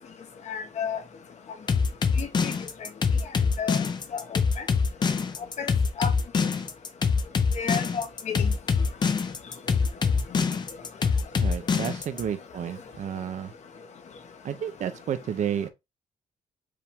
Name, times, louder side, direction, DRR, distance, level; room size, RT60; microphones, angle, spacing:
voice 1, 0.5-1.0 2.2-2.5 3.6-3.8 4.3-4.4 5.6-5.7 6.0-6.1 7.6-8.5, left 7 dB, 55° left, 1.0 m, -31 dB
sound 1, 1.7-12.2, left 5 dB, 30° left, 0.6 m, -24 dB
voice 2, 11.4-13.5 14.4-15.7, right 9 dB, 60° right, 0.7 m, -31 dB
4.9 x 2.8 x 3.5 m
cardioid pair, 135°, 14 cm